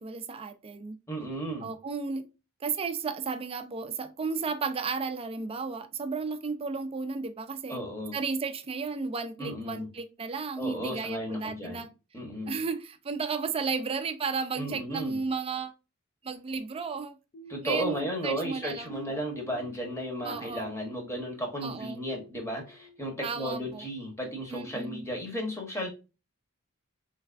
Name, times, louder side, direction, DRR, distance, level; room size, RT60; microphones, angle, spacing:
voice 1, 0.0-1.0 1.6-2.3 2.6-7.8 8.1-11.9 12.5-15.7 16.2-17.2 17.6-19.2 20.2-20.7 21.6-22.1 23.2-23.9 24.5-25.0, right 4 dB, 25° right, 0.4 m, -33 dB
voice 2, 1.1-1.7 7.7-8.1 9.4-9.9 10.6-11.9 12.1-12.6 14.5-15.2 17.5-25.9, equal, 15° left, 1.0 m, -34 dB
sound 1, 17.3-23.0 23.4-23.7 24.2-24.4, right 1 dB, 40° left, 0.4 m, -52 dB
3.2 x 3.2 x 2.4 m
head